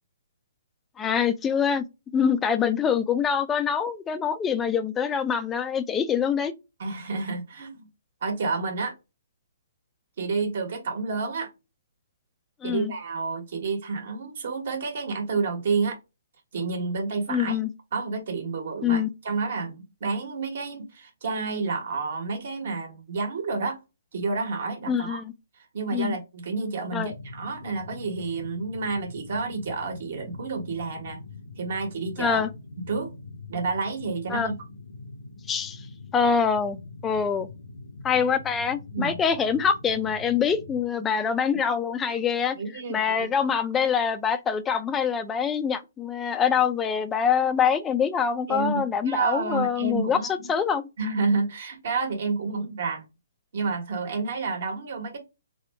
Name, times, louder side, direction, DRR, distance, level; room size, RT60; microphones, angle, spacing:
voice 1, 1.0-1.8 2.1-6.5 12.6-12.9 17.3-17.7 18.8-19.1 24.9-25.3 25.9-26.2 26.9-27.1 32.2-32.5 34.3-34.6 35.5-35.8 36.1-36.8 37.0-37.5 38.0-42.6 42.9-50.8, left 7 dB, 10° left, 0.3 m, -25 dB
voice 2, 6.8-7.9 8.2-8.9 10.2-11.5 12.6-16.0 16.5-17.6 17.9-23.8 24.1-25.2 25.7-31.2 31.6-32.4 32.9-33.1 33.5-34.5 38.9-39.2 42.1-42.2 42.6-43.3 48.5-50.5 51.0-53.0 53.5-55.2, right 4 dB, 55° right, 1.3 m, -29 dB
sound 1, 27.0-40.8, left 3 dB, 85° left, 0.8 m, -43 dB
3.7 x 2.2 x 3.3 m
hypercardioid pair, 165°, 0 cm